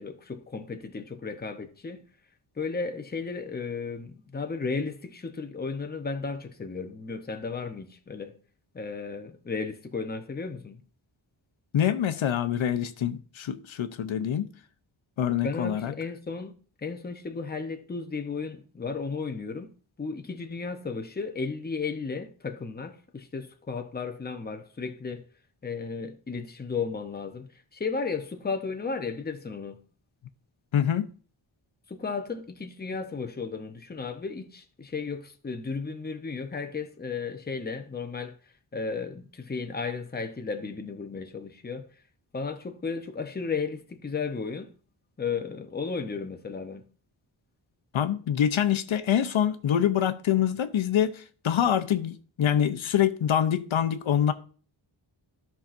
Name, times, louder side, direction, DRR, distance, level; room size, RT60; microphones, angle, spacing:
voice 1, 0.0-2.0 2.6-8.3 8.7-10.8 15.4-16.5 16.8-19.7 20.0-25.2 25.6-29.8 31.9-38.4 38.7-41.9 42.3-44.7 45.2-46.8, left 4 dB, 20° left, 0.7 m, -34 dB
voice 2, 11.7-14.5 15.2-15.9 30.7-31.1 47.9-54.3, left 9 dB, 80° left, 0.8 m, -25 dB
13.5 x 5.8 x 2.5 m
wide cardioid pair, 150°, 46 cm